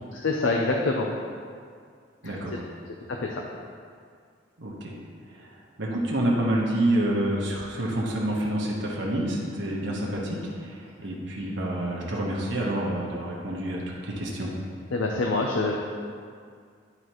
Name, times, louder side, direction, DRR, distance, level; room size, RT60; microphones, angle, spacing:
voice 1, 0.1-1.1 2.2-2.3 3.1-3.4 14.9-15.8, left 3 dB, 90° left, 0 dB, 0.6 m, -25 dB
voice 2, 2.2-2.6 4.6-4.9 5.3-14.5, right 1 dB, 70° right, -3 dB, 1.1 m, -28 dB
11.5 x 4.1 x 3.0 m, 2.1 s
head